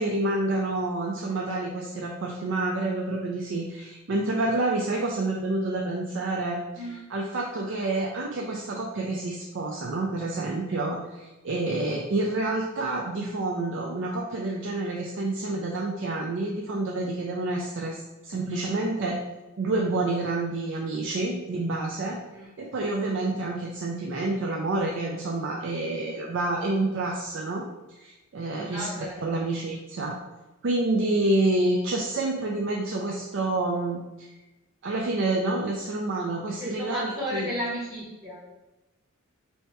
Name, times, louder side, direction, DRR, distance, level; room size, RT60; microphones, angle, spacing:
voice 1, 0.0-6.6 7.1-19.2 19.6-22.2 22.6-28.9 29.2-30.1 30.6-34.3 34.8-37.5, right 2 dB, 65° right, -1 dB, 0.4 m, -28 dB
voice 2, 6.8-7.1 22.3-22.5 28.7-29.3 36.6-38.4, equal, 15° right, -6 dB, 0.8 m, -33 dB
3.3 x 2.8 x 4.4 m, 1.1 s
head